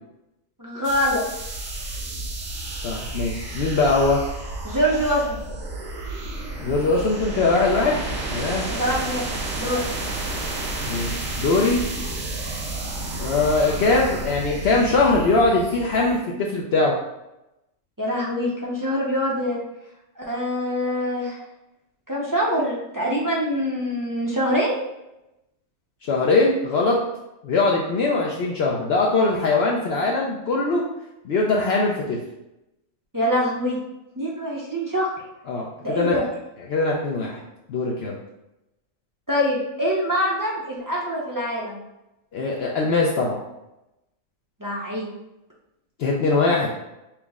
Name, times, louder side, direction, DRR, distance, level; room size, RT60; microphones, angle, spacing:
voice 1, 0.6-1.2 4.6-5.4 8.7-9.3 9.6-9.8 18.0-19.6 20.2-21.4 22.1-24.8 33.1-33.8 34.1-35.1 35.8-36.2 39.3-41.8 44.6-45.1, equal, 25° right, -5 dB, 0.5 m, -24 dB
sound 1, 0.8-16.2, right 2 dB, 65° right, 1.0 m, -31 dB
voice 2, 2.8-4.2 6.6-8.0 8.3-8.7 10.9-11.8 13.2-16.9 26.0-27.0 27.4-30.8 31.2-32.2 35.5-36.2 36.7-37.4 37.7-38.2 42.3-43.4 46.0-46.7, left 3 dB, 60° left, -3 dB, 0.7 m, -21 dB
5.8 x 2.1 x 3.5 m, 0.93 s
omnidirectional pair, 1.4 m